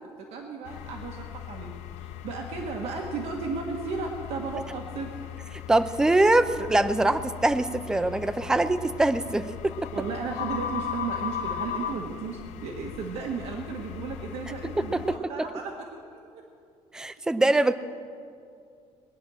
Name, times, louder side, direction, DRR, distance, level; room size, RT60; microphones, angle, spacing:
voice 1, 0.3-5.1 9.9-15.7 16.3-16.4, right 5 dB, 60° right, 1 dB, 1.5 m, -34 dB
sound 1, 0.7-15.2, left 9 dB, 90° left, 0.6 m, -38 dB
voice 2, 5.7-9.9 14.8-15.2 16.9-17.7, right 2 dB, 5° right, 11 dB, 0.4 m, -23 dB
21.0 x 10.0 x 6.3 m, 2.4 s
cardioid pair, 165°, 11 cm